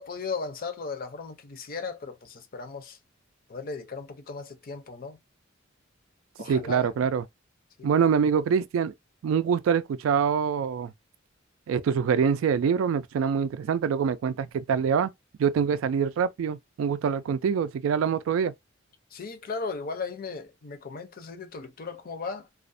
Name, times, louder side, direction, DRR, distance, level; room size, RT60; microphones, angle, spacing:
voice 1, 0.0-3.0 3.5-5.2 6.4-6.9 7.8-7.9 19.1-22.5, left 4 dB, 45° left, 0.5 m, -36 dB
voice 2, 6.5-7.2 7.8-8.9 9.2-10.9 11.7-15.1 15.4-18.5, right 7 dB, 75° right, 0.3 m, -25 dB
2.3 x 2.1 x 2.5 m
head